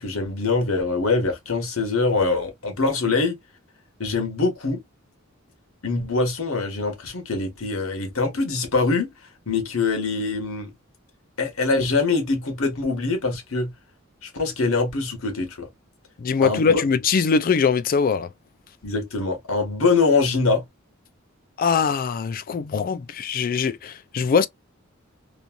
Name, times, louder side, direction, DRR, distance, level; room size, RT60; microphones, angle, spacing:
voice 1, 0.0-3.4 4.0-4.8 5.8-9.1 9.5-10.7 11.4-13.7 14.2-15.7 16.4-16.8 18.8-20.6, left 3 dB, 80° left, 1.1 m, -23 dB
voice 2, 16.2-18.3 21.6-24.5, left 5 dB, 45° left, 0.3 m, -22 dB
3.0 x 2.6 x 2.2 m
head